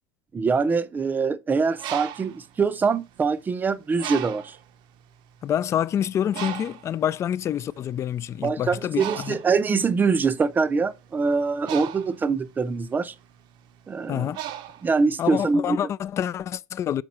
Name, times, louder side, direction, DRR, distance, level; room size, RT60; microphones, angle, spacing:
voice 1, 0.3-4.6 8.4-13.1 13.9-14.3 14.8-15.8, right 4 dB, 20° right, 0.6 m, -24 dB
Bird, 1.6-3.4 4.0-4.7 5.3-5.5 5.7-15.5, right 11 dB, 55° right, 0.7 m, -37 dB
voice 2, 5.4-9.4 14.1-14.4 15.2-17.0, left 10 dB, 30° left, 0.3 m, -27 dB
6.1 x 5.0 x 4.2 m
supercardioid pair, 125°, 10 cm